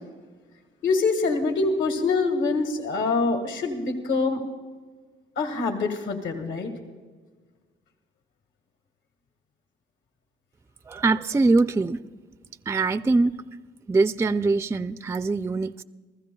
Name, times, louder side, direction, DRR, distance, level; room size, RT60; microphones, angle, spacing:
voice 1, 0.8-4.4 5.4-6.7, left 3 dB, 70° left, 5 dB, 1.7 m, -25 dB
voice 2, 10.9-12.0 12.7-13.3 13.9-15.8, right 3 dB, 15° right, 12 dB, 0.4 m, -23 dB
29.5 x 15.0 x 2.3 m, 1.4 s
cardioid pair, 90°, 20 cm